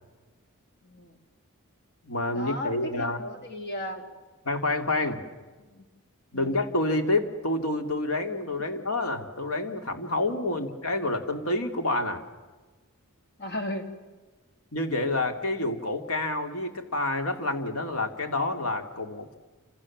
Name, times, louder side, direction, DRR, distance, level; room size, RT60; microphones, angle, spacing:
voice 1, 0.8-1.2 2.3-4.0 5.6-5.9 6.3-6.6 10.5-10.6 13.4-13.9, left 1 dB, 50° left, 5 dB, 3.5 m, -36 dB
voice 2, 2.0-3.2 4.4-5.2 6.3-12.2 14.7-19.3, left 2 dB, 70° left, 6 dB, 2.9 m, -28 dB
29.0 x 27.0 x 7.5 m, 1.3 s
head